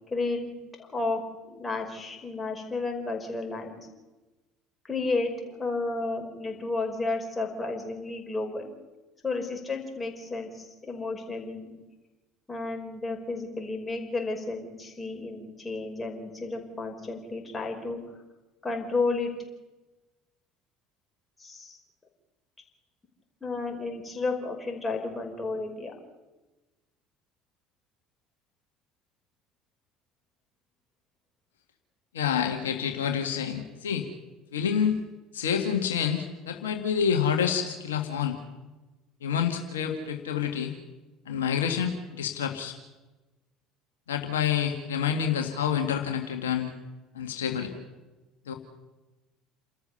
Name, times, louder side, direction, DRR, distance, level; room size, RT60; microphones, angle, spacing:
voice 1, 0.1-0.5 0.8-1.2 1.5-3.8 4.8-8.7 9.2-11.7 12.5-18.0 18.6-19.3 21.4-21.8 23.4-25.9, left 3 dB, 20° left, 2 dB, 5.5 m, -32 dB
voice 2, 32.1-34.1 34.5-35.0 35.3-38.4 39.2-40.7 41.3-42.8 44.1-46.7 47.1-47.7 48.5-48.6, left 8 dB, 80° left, 4 dB, 1.9 m, -28 dB
29.0 x 13.5 x 7.0 m, 1.1 s
hypercardioid pair, 65°, 0 cm